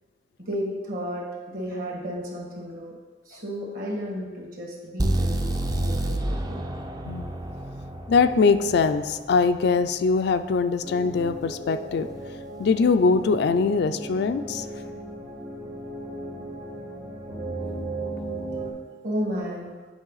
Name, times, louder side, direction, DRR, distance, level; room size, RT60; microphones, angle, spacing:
voice 1, 0.4-2.9 3.3-6.6 19.0-19.7, equal, 50° right, -2 dB, 1.8 m, -33 dB
sound 1, 5.0-8.9, right 1 dB, 20° right, 0.4 m, -28 dB
voice 2, 8.1-12.1 12.6-14.7, left 4 dB, 65° left, 10 dB, 0.3 m, -22 dB
sound 2, 10.8-18.7, right 2 dB, 90° right, 1.8 m, -36 dB
8.0 x 5.5 x 4.0 m, 1.4 s
head